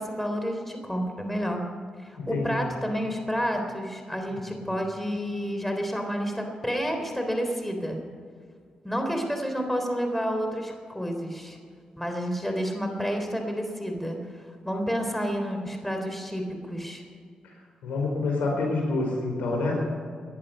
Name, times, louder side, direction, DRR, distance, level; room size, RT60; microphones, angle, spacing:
voice 1, 0.0-1.7 2.0-8.0 8.8-11.6 12.0-14.2 14.6-17.0, equal, 5° left, 4 dB, 3.6 m, -30 dB
voice 2, 2.1-2.6 17.8-19.8, left 3 dB, 85° left, 0 dB, 4.6 m, -27 dB
18.5 x 10.5 x 5.6 m, 2.1 s
supercardioid pair, 50°, 3 cm